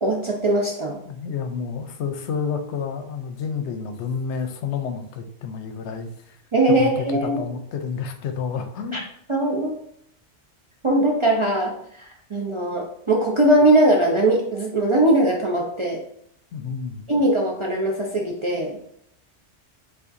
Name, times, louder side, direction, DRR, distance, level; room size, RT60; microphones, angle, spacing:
voice 1, 0.0-1.0 6.5-7.4 8.9-9.0 9.3-9.8 10.8-16.0 17.1-18.8, right 1 dB, 40° right, -1 dB, 0.4 m, -20 dB
voice 2, 1.1-6.4 6.8-9.0 16.5-17.1, left 6 dB, 85° left, 7 dB, 0.9 m, -30 dB
7.0 x 2.4 x 2.6 m, 0.69 s
omnidirectional pair, 1.2 m